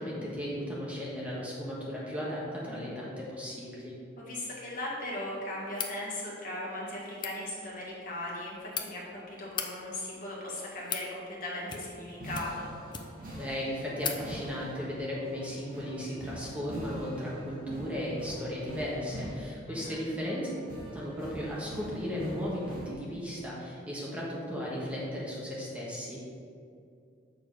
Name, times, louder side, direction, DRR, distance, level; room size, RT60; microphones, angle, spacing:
voice 1, 0.0-3.9 13.3-20.5 20.9-26.3, equal, 5° right, -6 dB, 1.3 m, -36 dB
voice 2, 2.6-3.0 4.2-12.7 19.7-20.0, left 1 dB, 50° left, -5 dB, 1.9 m, -38 dB
sound 1, 5.7-6.0 7.1-7.3 8.3-8.9 9.4-9.7 10.5-11.1 11.6-12.0 12.3-13.3 13.6-13.7 14.0-14.2, left 6 dB, 25° left, 0.6 m, -37 dB
sound 2, 11.5-22.9, right 1 dB, 45° right, 2.1 m, -44 dB
7.0 x 6.5 x 4.7 m, 2.4 s
head